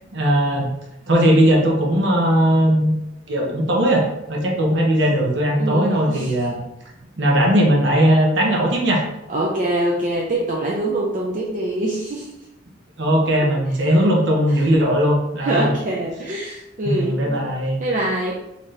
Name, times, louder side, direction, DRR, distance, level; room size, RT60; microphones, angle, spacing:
voice 1, 0.1-0.7 1.1-2.9 3.3-6.6 7.2-9.0 13.0-15.7 16.9-17.8, equal, 65° right, -1 dB, 0.8 m, -18 dB
voice 2, 5.6-6.3 9.3-12.3 13.4-13.5 13.8-14.0 14.5-14.7 15.4-17.4 17.8-18.3, right 1 dB, 45° right, -3 dB, 0.5 m, -24 dB
4.0 x 2.7 x 3.2 m, 0.89 s
head